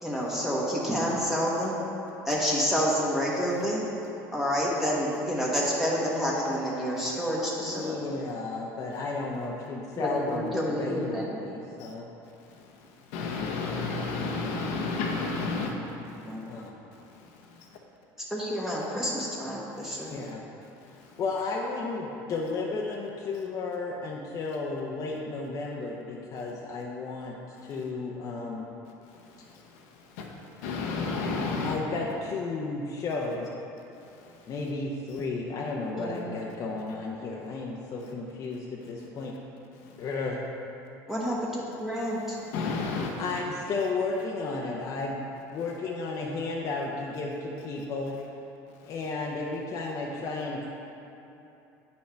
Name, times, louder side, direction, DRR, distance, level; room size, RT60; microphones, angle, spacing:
voice 1, 0.0-1.8 2.2-3.8 4.3-7.9 9.9-11.4 16.2-16.4 18.3-20.1 36.0-36.3 41.1-42.4, equal, 5° right, -6 dB, 1.2 m, -28 dB
voice 2, 7.7-12.1 16.5-16.7 20.1-20.4 21.2-28.7 31.6-33.5 34.5-39.3 40.0-40.4 43.2-45.2 45.5-48.1 48.8-50.7, left 3 dB, 45° left, -2 dB, 0.7 m, -33 dB
voice 3, 12.5-15.7 16.2-17.7 19.8-20.1 20.9-21.2 29.1-30.3 30.6-31.8 34.2-34.5 39.8-40.0 42.5-43.2, left 4 dB, 80° left, 0 dB, 0.9 m, -33 dB
8.9 x 5.6 x 3.4 m, 2.9 s
supercardioid pair, 105°, 8 cm